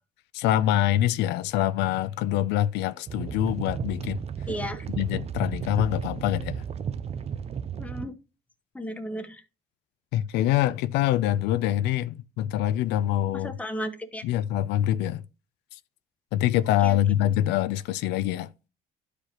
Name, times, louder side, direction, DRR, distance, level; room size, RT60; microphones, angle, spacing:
voice 1, 0.3-4.2 5.0-6.6 10.1-13.6 14.2-15.2 16.3-18.5, left 12 dB, 90° left, 0.5 m, -25 dB
sound 1, 3.1-8.1, right 7 dB, 40° right, 0.5 m, -34 dB
voice 2, 4.5-4.9 7.8-8.1 8.7-9.4 13.4-14.2 16.8-17.0, equal, 10° left, 1.1 m, -34 dB
11.5 x 5.0 x 2.9 m
cardioid pair, 110°, 17 cm